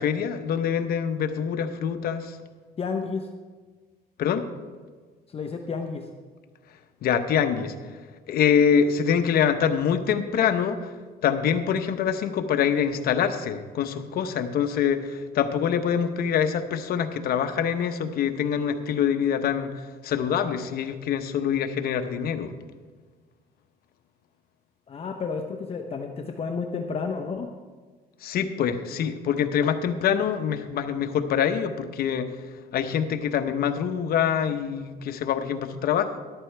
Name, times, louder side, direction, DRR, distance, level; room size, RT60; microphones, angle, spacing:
voice 1, 0.0-2.4 4.2-4.5 7.0-7.7 8.3-10.9 11.2-19.7 20.0-22.5 28.2-32.3 32.7-36.2, left 8 dB, 65° left, 8 dB, 0.9 m, -25 dB
voice 2, 2.8-3.3 5.3-6.1 24.9-27.5, left 5 dB, 35° left, 4 dB, 0.8 m, -31 dB
13.5 x 11.5 x 3.4 m, 1.5 s
cardioid pair, 110°, 17 cm